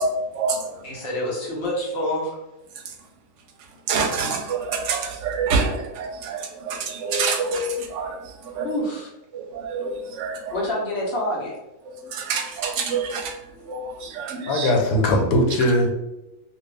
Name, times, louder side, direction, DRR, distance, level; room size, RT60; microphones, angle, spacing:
voice 1, 0.0-0.8 3.9-8.2 8.5-8.7 9.3-10.5 11.9-13.3 13.7-14.7, right 4 dB, 65° right, 2 dB, 0.9 m, -26 dB
voice 2, 0.8-2.4 8.6-9.1 10.5-11.6, left 1 dB, 55° left, -3 dB, 1.1 m, -27 dB
voice 3, 14.5-15.9, left 1 dB, 85° left, 2 dB, 1.1 m, -19 dB
2.5 x 2.5 x 3.2 m, 0.97 s
omnidirectional pair, 1.4 m